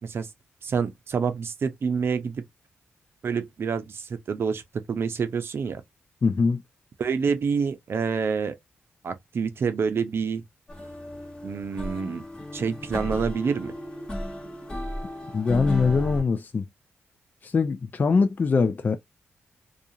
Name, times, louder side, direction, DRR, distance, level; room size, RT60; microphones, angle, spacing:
voice 1, 0.6-2.4 3.2-4.6 4.9-5.8 7.0-8.6 9.0-10.4 11.4-12.2 12.5-13.7, right 6 dB, 60° right, 0.6 m, -27 dB
voice 2, 6.2-6.6 15.3-16.6 17.4-19.0, left 4 dB, 40° left, 0.4 m, -22 dB
sound 1, 10.7-16.2, equal, 20° left, 1.0 m, -34 dB
2.4 x 2.4 x 2.7 m
cardioid pair, 75°, 5 cm